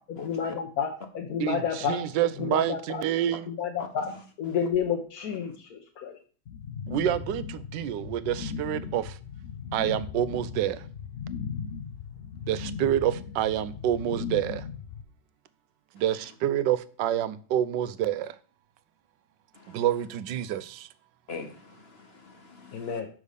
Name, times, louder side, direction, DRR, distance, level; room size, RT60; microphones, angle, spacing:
voice 1, 0.2-2.1 2.4-3.0 3.5-4.1 4.4-6.2 22.7-23.1, left 7 dB, 60° left, 1.3 m, -30 dB
voice 2, 1.4-3.5 6.9-7.4 7.7-9.2 9.7-10.8 12.5-14.6 16.0-18.3 19.7-20.9, right 11 dB, 85° right, 1.3 m, -27 dB
voice 3, 3.8-4.2 19.5-19.8 21.3-23.0, left 4 dB, 40° left, 1.1 m, -43 dB
sound 1, 6.5-15.0, left 6 dB, 80° left, 0.6 m, -37 dB
6.2 x 5.3 x 6.5 m
omnidirectional pair, 1.9 m